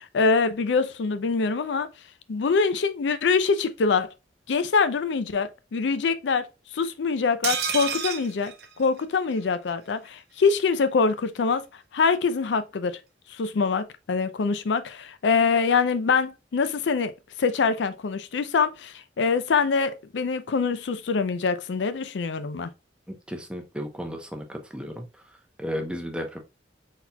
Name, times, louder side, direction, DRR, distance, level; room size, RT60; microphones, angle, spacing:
voice 1, 0.0-1.9 2.3-4.1 4.5-6.5 6.7-11.6 11.9-13.0 13.3-17.1 17.4-22.7, left 5 dB, 80° left, 0.4 m, -24 dB
sound 1, 7.4-9.4 9.7-9.8 10.1-10.2, right 7 dB, 60° right, 0.7 m, -30 dB
voice 2, 23.3-25.1 25.6-26.4, equal, 5° right, 0.7 m, -33 dB
4.2 x 4.1 x 2.2 m
head